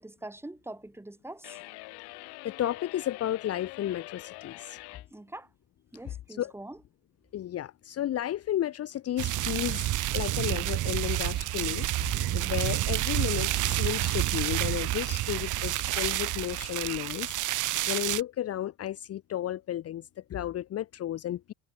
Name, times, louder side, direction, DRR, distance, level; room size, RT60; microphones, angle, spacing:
voice 1, 0.0-1.6 5.1-5.5 5.9-6.8, right 1 dB, 5° right, 3.6 m, -43 dB
sound 1, 1.4-5.1, left 27 dB, 80° left, 2.2 m, -45 dB
voice 2, 2.4-4.8 6.0-6.5 7.3-9.9 10.1-11.9 12.3-21.5, left 12 dB, 40° left, 1.1 m, -33 dB
sound 2, 9.2-18.2, right 15 dB, 50° right, 1.5 m, -29 dB
sound 3, 10.0-17.1, right 25 dB, 80° right, 5.8 m, -43 dB
cardioid pair, 140°, 39 cm